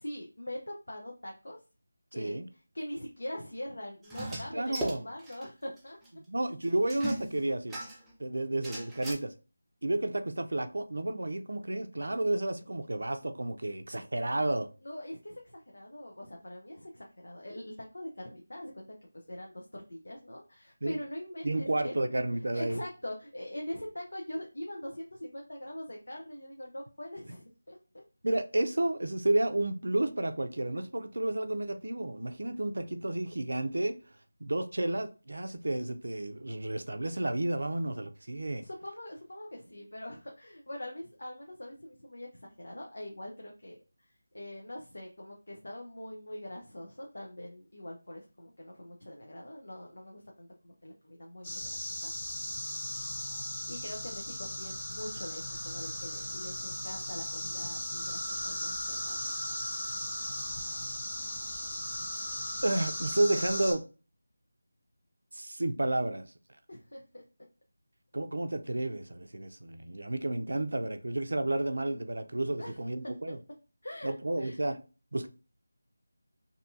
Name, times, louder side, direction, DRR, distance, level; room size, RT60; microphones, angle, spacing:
voice 1, 0.0-1.6 2.1-6.0 14.8-18.9 19.3-21.9 22.5-27.8 38.6-44.1 44.3-51.6 52.0-52.1 53.7-59.3 66.7-67.2 72.6-72.8 73.8-74.6, left 1 dB, 80° left, 0.6 m, -43 dB
voice 2, 2.1-2.5 4.3-5.1 6.3-7.8 8.2-9.3 9.8-14.7 20.8-21.0 21.4-22.8 28.2-34.0 34.4-38.6 62.6-63.8 65.3-66.3 68.1-73.4 74.0-74.8 75.1-75.3, right 1 dB, 75° right, 0.4 m, -31 dB
sound 1, 4.0-5.5 5.8-5.9 6.0-6.1 6.9-8.1 8.6-9.1, right 1 dB, 5° right, 0.4 m, -38 dB
sound 2, 51.4-63.7, left 1 dB, 35° left, 1.1 m, -37 dB
2.7 x 2.3 x 2.6 m
figure-of-eight pair, 170°, 0 cm